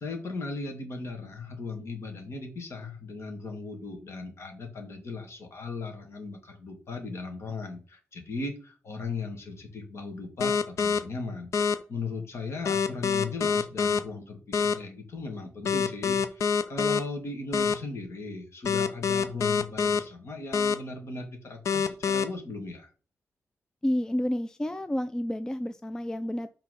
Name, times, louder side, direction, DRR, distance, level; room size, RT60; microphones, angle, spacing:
voice 1, 0.0-22.9, left 3 dB, 55° left, 3 dB, 2.0 m, -37 dB
sound 1, 10.4-11.0 11.5-11.7 12.6-14.0 14.5-14.7 15.6-17.0 17.5-17.7 18.6-20.0 20.5-20.7 21.6-22.2, left 6 dB, 70° left, 0.6 m, -25 dB
voice 2, 23.8-26.5, left 1 dB, 10° left, 10 dB, 0.3 m, -30 dB
5.8 x 3.7 x 5.6 m, 0.36 s
wide cardioid pair, 175°, 5 cm